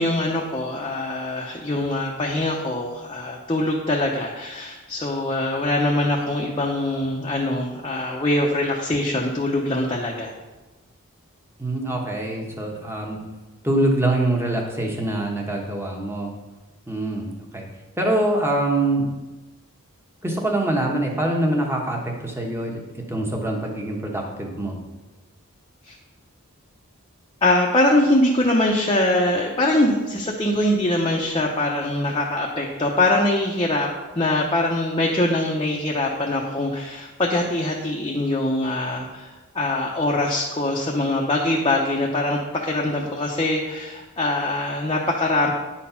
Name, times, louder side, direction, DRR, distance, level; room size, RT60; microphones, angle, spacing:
voice 1, 0.0-10.3 25.9-26.0 27.4-45.5, left 1 dB, 25° left, -2 dB, 0.7 m, -23 dB
voice 2, 11.6-13.2 13.6-16.3 16.9-17.7 18.0-19.1 20.2-24.8, right 1 dB, 10° right, 0 dB, 1.1 m, -24 dB
9.5 x 4.3 x 5.7 m, 1.2 s
head